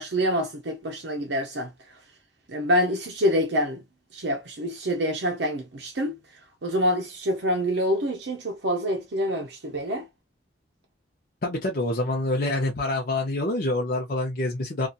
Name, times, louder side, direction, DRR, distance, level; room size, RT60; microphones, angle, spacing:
voice 1, 0.0-1.7 2.5-3.8 4.1-6.2 6.6-10.1, equal, 70° right, 0.6 m, -26 dB
voice 2, 11.4-14.9, left 2 dB, 50° left, 0.6 m, -26 dB
2.7 x 2.4 x 2.3 m
head